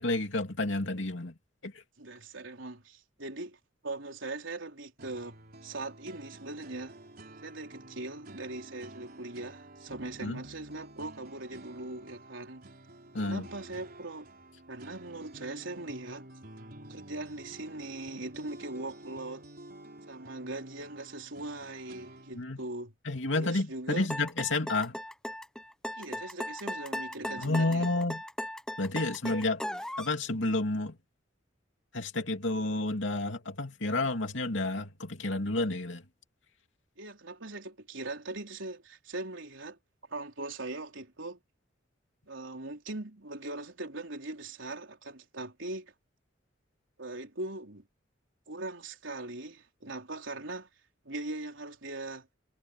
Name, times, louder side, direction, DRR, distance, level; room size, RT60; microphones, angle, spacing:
voice 1, 0.0-1.3 1.6-1.7 10.2-10.4 13.1-13.4 22.3-22.6 23.0-25.0 27.4-28.2 28.8-29.6 30.0-30.9 31.9-36.0, left 2 dB, 70° left, 3.1 m, -30 dB
voice 2, 2.0-3.6 3.8-7.0 7.4-12.7 13.2-14.3 14.7-16.3 16.9-19.4 20.1-22.9 23.4-24.1 26.0-27.9 37.0-39.8 40.1-41.4 42.3-45.9 47.0-47.8 48.5-50.7 51.0-52.3, right 2 dB, 75° right, 4.3 m, -40 dB
sound 1, 5.0-22.4, right 1 dB, 50° right, 5.0 m, -50 dB
sound 2, 24.1-30.2, left 1 dB, 5° left, 1.0 m, -37 dB
head